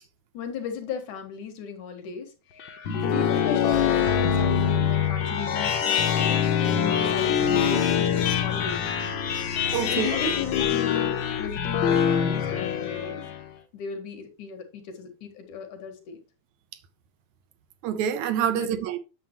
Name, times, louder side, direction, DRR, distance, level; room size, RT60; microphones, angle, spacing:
voice 1, 0.3-2.3 3.0-8.8 9.8-13.3 13.7-16.2 18.6-18.7, left 7 dB, 80° left, 3.1 m, -36 dB
sound 1, 2.6-13.4, left 8 dB, 65° left, 1.3 m, -24 dB
voice 2, 2.9-3.2 9.7-10.2 17.8-19.0, right 9 dB, 80° right, 2.2 m, -27 dB
9.3 x 7.2 x 3.0 m
omnidirectional pair, 3.4 m